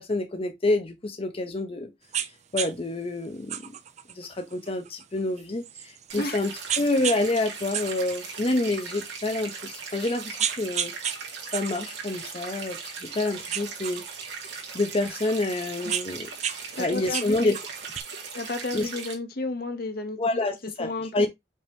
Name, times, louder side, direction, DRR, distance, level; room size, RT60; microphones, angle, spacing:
voice 1, 0.0-1.9 2.5-3.7 4.1-6.5 6.8-10.9 11.5-14.0 14.7-16.3 16.8-17.5 18.7-18.9 20.2-21.3, left 2 dB, 35° left, 0.7 m, -28 dB
sound 1, 2.1-2.3 2.6-2.7 3.5-6.2 6.7-7.2 7.6-8.9 9.5-9.6 10.1-11.2 11.5-13.1 13.5-14.8 15.5-16.6 16.9-18.0, right 9 dB, 40° right, 0.5 m, -32 dB
sound 2, 6.1-19.1, right 5 dB, 90° right, 1.7 m, -39 dB
voice 2, 16.7-17.6 18.3-21.3, left 2 dB, 60° left, 0.9 m, -32 dB
5.3 x 2.9 x 3.3 m
head